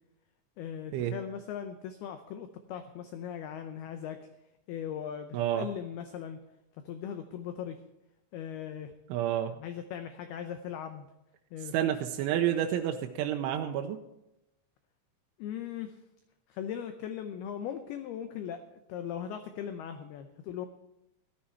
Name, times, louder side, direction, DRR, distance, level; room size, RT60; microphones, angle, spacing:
voice 1, 0.6-4.2 4.7-6.4 6.8-7.8 8.3-8.9 9.6-11.1 11.5-11.7 15.4-16.0 16.5-20.7, left 9 dB, 85° left, 8 dB, 2.2 m, -39 dB
voice 2, 5.3-5.7 9.1-9.5 11.6-14.0, right 11 dB, 90° right, 4 dB, 3.2 m, -29 dB
15.0 x 13.0 x 4.5 m, 0.88 s
omnidirectional pair, 5.6 m